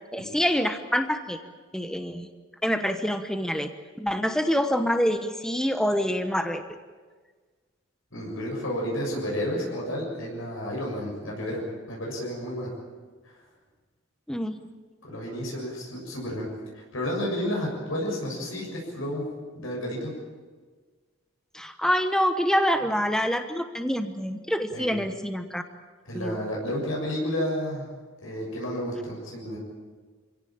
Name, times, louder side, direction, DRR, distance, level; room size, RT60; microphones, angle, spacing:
voice 1, 0.1-1.4 1.7-2.3 2.6-3.7 4.0-6.6 14.3-14.6 21.5-25.6 26.1-26.4, equal, 5° left, 7 dB, 1.0 m, -26 dB
voice 2, 8.1-11.6 11.9-12.7 13.2-13.4 15.0-16.5 16.7-19.3 19.6-20.1 24.7-24.9 26.0-27.9 28.2-29.6, equal, 80° left, -2 dB, 6.9 m, -31 dB
26.0 x 17.0 x 8.7 m, 1.4 s
head